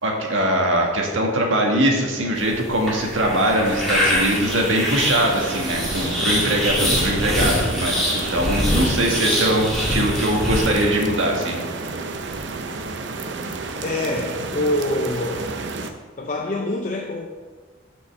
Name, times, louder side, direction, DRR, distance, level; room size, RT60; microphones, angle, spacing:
voice 1, 0.0-11.6, right 1 dB, 85° right, 0 dB, 1.6 m, -21 dB
sound 1, 2.4-10.8, equal, ahead, 2.1 m, -24 dB
sound 2, 3.6-15.9, right 3 dB, 60° right, 0.6 m, -31 dB
voice 2, 13.8-15.5 16.2-17.3, left 1 dB, 40° left, 1 dB, 0.6 m, -25 dB
6.5 x 5.4 x 6.5 m, 1.5 s
head